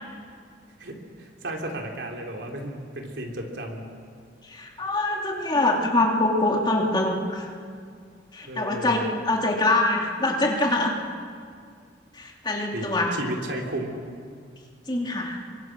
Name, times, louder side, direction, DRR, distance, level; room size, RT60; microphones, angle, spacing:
voice 1, 0.8-3.8 8.5-9.1 12.7-14.0, right 1 dB, 75° right, 1 dB, 3.6 m, -34 dB
voice 2, 4.5-7.5 8.3-10.9 12.2-13.1 14.9-15.4, left 2 dB, 25° left, 0 dB, 2.7 m, -24 dB
28.5 x 24.0 x 6.2 m, 2.2 s
head